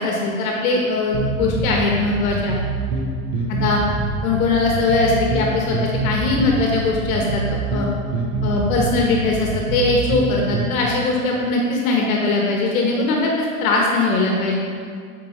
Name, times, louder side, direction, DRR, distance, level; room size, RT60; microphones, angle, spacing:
voice 1, 0.0-2.6 3.5-3.8 4.2-7.9 8.4-14.6, left 3 dB, 75° left, -1 dB, 1.1 m, -20 dB
sound 1, 1.1-10.7, right 3 dB, 30° right, 0.7 m, -25 dB
8.5 x 4.8 x 3.0 m, 2.1 s
supercardioid pair, 175°, 42 cm